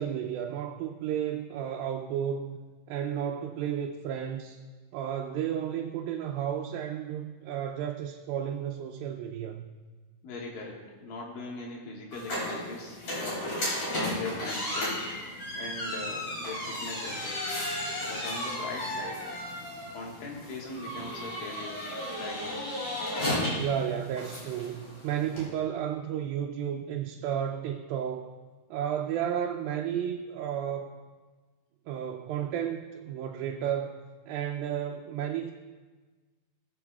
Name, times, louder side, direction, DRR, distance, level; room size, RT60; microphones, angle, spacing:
voice 1, 0.0-2.6 2.9-4.6 4.9-9.7 23.5-28.4 28.7-31.0 31.9-34.0 34.3-35.5, right 9 dB, 85° right, 2 dB, 2.3 m, -32 dB
voice 2, 10.2-13.5 13.9-15.0 15.6-17.4 18.1-19.2 19.9-21.8 22.2-22.6, left 3 dB, 70° left, -2 dB, 3.2 m, -40 dB
sound 1, 12.1-25.5, left 1 dB, 50° left, 4.8 m, -34 dB
21.5 x 8.0 x 2.3 m, 1.4 s
omnidirectional pair, 4.2 m